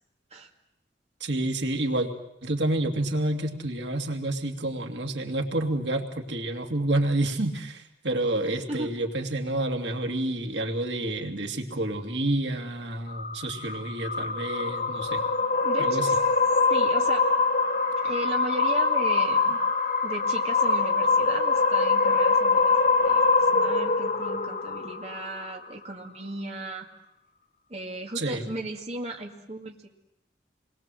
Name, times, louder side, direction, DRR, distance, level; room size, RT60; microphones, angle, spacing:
voice 1, 1.2-2.1 2.4-15.2 15.8-16.1 28.2-28.5, right 1 dB, 85° right, 4 dB, 2.5 m, -29 dB
voice 2, 8.7-9.0 15.6-16.2 16.7-17.3 18.0-19.6 20.0-22.7 23.0-26.9 27.7-29.9, right 2 dB, 35° right, 1 dB, 2.2 m, -36 dB
sound 1, 13.1-25.6, left 4 dB, 45° left, 1.4 m, -24 dB
28.0 x 21.5 x 7.7 m, 0.81 s
head